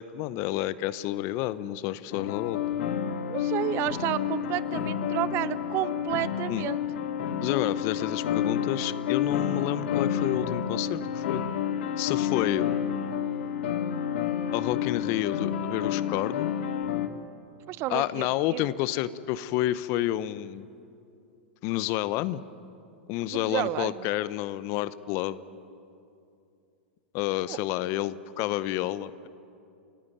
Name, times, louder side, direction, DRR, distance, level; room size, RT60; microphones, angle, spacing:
voice 1, 0.0-2.6 6.5-6.7 7.4-11.4 12.0-12.7 14.5-16.5 17.9-20.7 21.6-22.4 23.1-25.4 27.1-29.3, left 15 dB, 50° left, 16 dB, 0.9 m, -29 dB
sound 1, 2.1-17.1, left 9 dB, 70° left, 1.5 m, -30 dB
voice 2, 3.3-6.8 17.7-18.7 23.3-24.1 27.5-27.6, right 15 dB, 45° right, 16 dB, 0.8 m, -31 dB
29.0 x 16.0 x 9.2 m, 2.6 s
hypercardioid pair, 105°, 6 cm